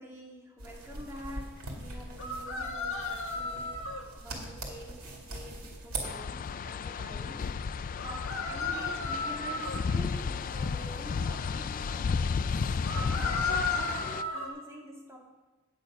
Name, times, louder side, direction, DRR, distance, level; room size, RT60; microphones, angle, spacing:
voice 1, 0.0-12.8 13.0-15.2, equal, 10° right, -2 dB, 1.9 m, -47 dB
sound 1, 0.6-6.0, right 2 dB, 85° right, 2.2 m, -41 dB
sound 2, 2.2-4.0 8.0-9.8 12.8-14.5, left 3 dB, 65° left, 1.7 m, -34 dB
sound 3, 6.0-14.2, left 5 dB, 40° left, 0.3 m, -33 dB
8.8 x 8.7 x 5.4 m, 1.2 s
head